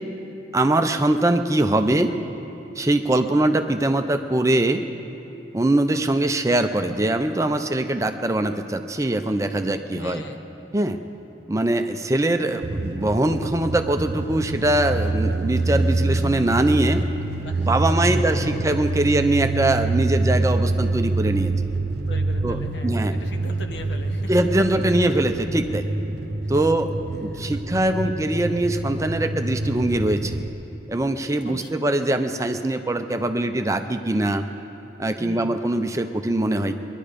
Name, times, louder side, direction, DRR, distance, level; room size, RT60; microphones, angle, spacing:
voice 1, 0.5-2.1 2.8-4.8 5.5-10.2 10.7-11.0 11.5-17.0 17.6-21.5 22.4-23.2 24.3-25.9 26.5-30.4 30.9-34.5 35.0-36.8, right 1 dB, 15° right, 7 dB, 0.5 m, -22 dB
voice 2, 9.9-10.4 17.3-19.2 22.1-24.3 24.9-25.0 26.4-26.6 27.3-27.6 27.9-28.2 31.4-31.8 35.2-35.6, left 1 dB, 75° left, 4 dB, 1.2 m, -40 dB
sound 1, 12.6-30.5, right 2 dB, 60° right, 0.8 m, -26 dB
22.0 x 11.0 x 5.1 m, 2.9 s
head